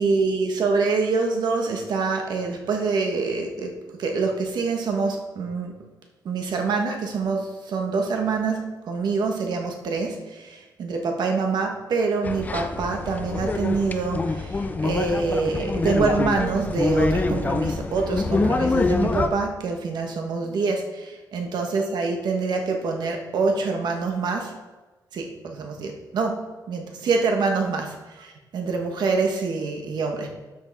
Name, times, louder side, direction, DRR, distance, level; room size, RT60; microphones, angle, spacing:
voice 1, 0.0-5.7 6.2-24.6 25.1-30.3, right 4 dB, 75° right, 3 dB, 1.4 m, -26 dB
sound 1, 12.2-19.3, left 3 dB, 20° left, 0.5 m, -25 dB
12.5 x 5.6 x 4.1 m, 1.2 s
wide cardioid pair, 170°, 7 cm